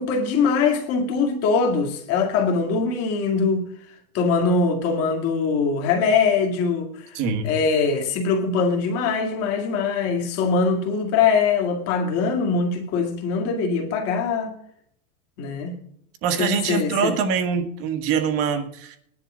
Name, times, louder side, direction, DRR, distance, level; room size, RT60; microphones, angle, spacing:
voice 1, 0.0-3.7 4.1-6.9 7.4-14.5 15.4-15.8 16.4-17.1, left 5 dB, 35° left, 2.4 m, -22 dB
voice 2, 7.1-7.5 16.2-19.0, right 6 dB, 30° right, 1.6 m, -24 dB
20.5 x 11.0 x 3.8 m
supercardioid pair, 170°, 44 cm